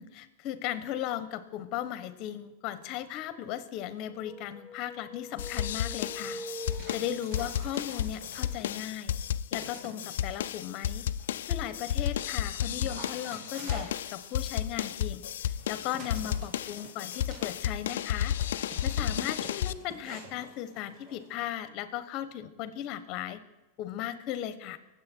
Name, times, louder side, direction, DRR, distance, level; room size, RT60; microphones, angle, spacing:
voice 1, 0.0-9.1 9.5-11.1 11.5-18.4 18.8-23.4 23.8-24.8, left 11 dB, 45° left, 13 dB, 1.2 m, -37 dB
sound 1, 4.1-7.7, equal, 5° right, 6.3 m, -43 dB
sound 2, 5.4-19.7, left 10 dB, 80° left, 0.5 m, -33 dB
Dog, 6.1-9.0 9.5-10.6 11.2-21.5, right 1 dB, 40° right, 4.1 m, -49 dB
23.0 x 7.9 x 4.6 m, 1.1 s
supercardioid pair, 130°, 0 cm